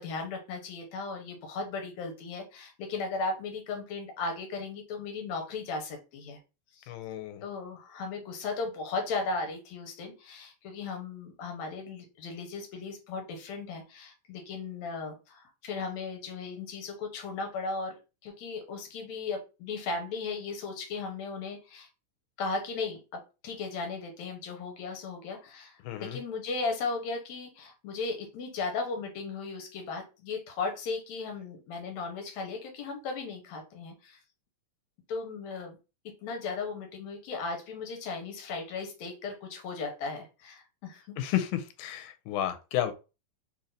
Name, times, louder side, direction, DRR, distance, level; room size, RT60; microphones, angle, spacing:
voice 1, 0.0-6.4 6.7-6.9 7.4-17.9 18.2-21.9 22.4-34.2 35.1-35.8 36.2-41.2, left 4 dB, 70° left, 4 dB, 2.3 m, -36 dB
voice 2, 6.9-7.4 25.8-26.2 41.2-42.9, left 12 dB, 85° left, 8 dB, 2.1 m, -32 dB
4.6 x 2.8 x 3.9 m, 0.29 s
omnidirectional pair, 3.5 m